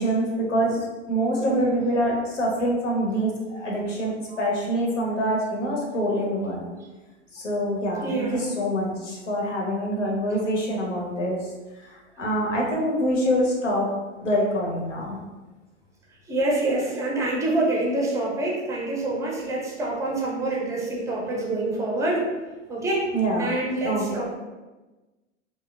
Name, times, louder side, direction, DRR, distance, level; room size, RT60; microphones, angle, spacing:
voice 1, 0.0-6.7 7.3-11.5 11.8-13.9 14.2-15.2 23.1-23.6 23.8-24.0, equal, 85° left, -2 dB, 0.7 m, -25 dB
voice 2, 1.4-1.8 8.0-8.5 16.3-22.3 22.7-23.0 23.4-24.3, right 2 dB, 10° right, -3 dB, 0.5 m, -26 dB
2.7 x 2.1 x 2.4 m, 1.2 s
figure-of-eight pair, 90°, 36 cm